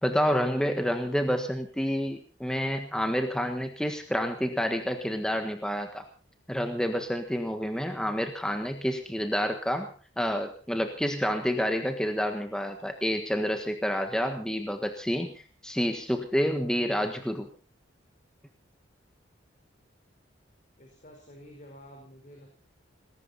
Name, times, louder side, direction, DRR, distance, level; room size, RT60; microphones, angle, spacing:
voice 1, 0.0-6.1 6.5-17.5, equal, 5° left, 5 dB, 1.5 m, -29 dB
voice 2, 20.8-22.6, equal, 40° left, 2 dB, 4.4 m, -50 dB
20.0 x 17.5 x 4.2 m, 0.37 s
head